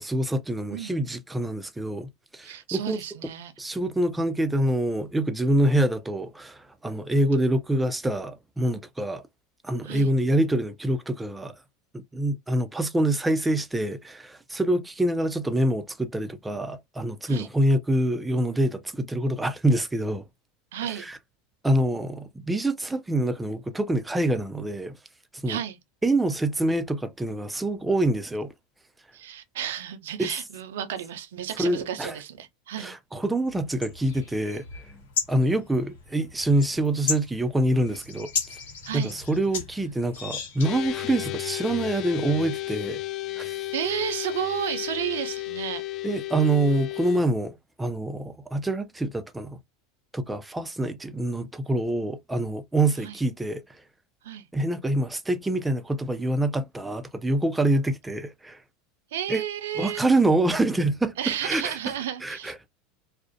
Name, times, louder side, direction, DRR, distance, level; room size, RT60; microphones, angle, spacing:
voice 1, 0.0-3.0 3.6-9.2 9.6-11.5 11.9-20.2 21.0-21.2 21.6-25.0 25.4-25.6 26.0-28.5 30.2-30.4 31.6-32.2 32.8-34.6 35.3-38.3 38.9-43.0 43.4-43.6 46.0-49.6 50.1-53.6 54.5-58.6 59.3-59.4 59.8-61.1 61.4-61.8 62.2-62.6, right 1 dB, 10° right, 0.4 m, -26 dB
voice 2, 2.4-3.5 9.8-10.1 17.3-17.5 20.7-21.1 25.5-25.8 29.1-32.9 38.8-39.2 43.7-45.8 53.0-53.2 54.2-54.5 59.1-60.0 61.2-62.5, right 10 dB, 75° right, 0.4 m, -32 dB
Mid Atlantic US Spring Birds, 33.5-40.9, left 5 dB, 80° left, 0.9 m, -35 dB
sound 1, 40.6-47.2, left 16 dB, 55° left, 0.5 m, -33 dB
2.4 x 2.0 x 2.5 m
hypercardioid pair, 90°, 0 cm